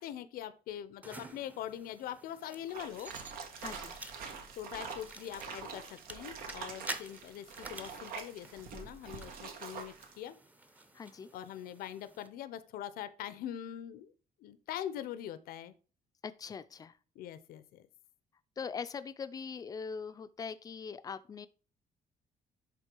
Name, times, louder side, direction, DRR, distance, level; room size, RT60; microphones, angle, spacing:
voice 1, 0.0-3.1 4.6-10.3 11.3-14.1 14.4-15.7 17.1-17.9, left 11 dB, 90° left, 0.8 m, -43 dB
sound 1, 1.0-12.3, right 2 dB, 10° right, 0.7 m, -50 dB
sound 2, 2.7-10.2, right 5 dB, 90° right, 1.6 m, -45 dB
voice 2, 3.6-3.9 10.9-11.3 16.2-17.0 18.6-21.5, left 6 dB, 25° left, 0.4 m, -41 dB
11.0 x 3.7 x 4.6 m
cardioid pair, 170°, 15 cm